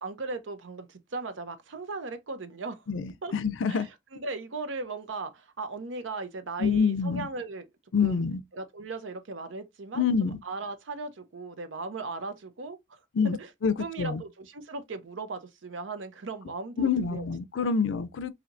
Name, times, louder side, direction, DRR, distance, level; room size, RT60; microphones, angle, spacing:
voice 1, 0.0-2.8 3.2-3.3 3.7-7.6 8.0-8.2 8.5-13.0 13.4-13.5 13.8-17.3 17.6-17.7, right 3 dB, 90° right, 0.7 m, -37 dB
voice 2, 2.9-3.9 6.6-7.3 7.9-8.4 9.9-10.4 13.1-13.4 13.6-14.2 16.8-18.3, left 5 dB, 90° left, 0.5 m, -26 dB
4.3 x 2.8 x 2.5 m
head